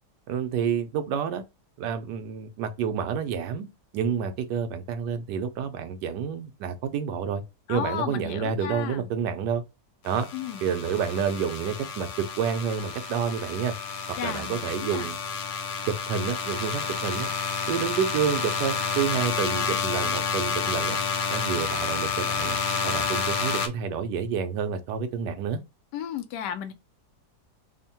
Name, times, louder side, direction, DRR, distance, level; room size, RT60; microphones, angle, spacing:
voice 1, 0.3-1.4 1.8-3.7 3.9-7.4 7.7-9.6 10.0-10.3 10.6-13.7 14.2-15.2 15.9-17.3 17.7-21.0 21.3-22.6 22.8-25.6, right 7 dB, 85° right, 1.3 m, -29 dB
voice 2, 7.7-9.1 10.3-10.6 14.2-15.1 25.9-26.7, left 9 dB, 90° left, 1.2 m, -34 dB
sound 1, 10.1-23.7, left 5 dB, 65° left, 0.6 m, -30 dB
3.6 x 2.1 x 4.1 m
omnidirectional pair, 1.8 m